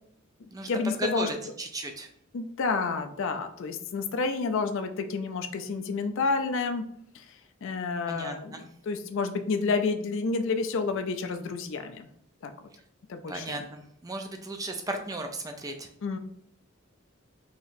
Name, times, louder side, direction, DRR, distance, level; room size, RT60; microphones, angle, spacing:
voice 1, 0.4-1.3 2.3-6.8 7.1-7.3 7.6-12.1 12.4-12.5 13.1-13.6 16.0-16.2, left 4 dB, 65° left, 7 dB, 0.4 m, -30 dB
voice 2, 1.0-2.1 8.1-8.6 13.3-15.9, right 1 dB, 15° right, 5 dB, 0.3 m, -35 dB
4.0 x 2.9 x 2.6 m, 0.71 s
head